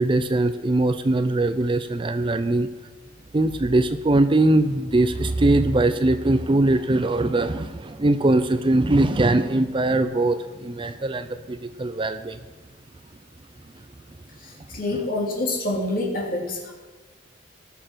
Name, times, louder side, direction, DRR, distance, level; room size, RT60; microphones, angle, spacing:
voice 1, 0.0-2.7 3.3-12.4, right 2 dB, 25° right, 11 dB, 0.5 m, -21 dB
voice 2, 14.4-16.7, left 2 dB, 45° left, -1 dB, 3.0 m, -27 dB
19.0 x 6.6 x 5.9 m, 1.3 s
head